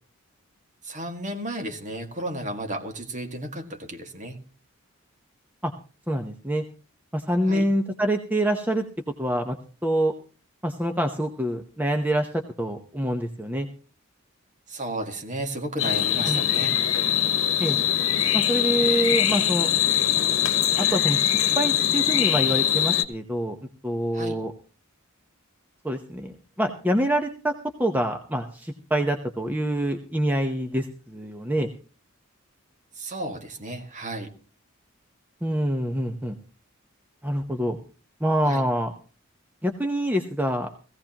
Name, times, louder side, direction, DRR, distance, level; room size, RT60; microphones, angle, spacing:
voice 1, 0.8-4.4 7.5-7.7 14.7-16.7 24.1-24.4 33.0-34.3 38.4-38.6, right 1 dB, 35° right, 4 dB, 1.9 m, -33 dB
voice 2, 6.1-6.6 7.1-8.8 9.2-9.6 9.8-10.1 10.6-13.7 16.2-16.5 17.6-17.8 18.3-19.7 20.8-23.6 23.8-24.5 25.8-27.5 27.8-31.7 35.4-36.4 37.2-37.8 38.2-38.9 39.6-40.7, right 1 dB, 10° right, 4 dB, 0.8 m, -26 dB
sound 1, 15.8-23.0, left 11 dB, 70° left, 1.1 m, -22 dB
17.5 x 16.0 x 2.9 m, 0.36 s
head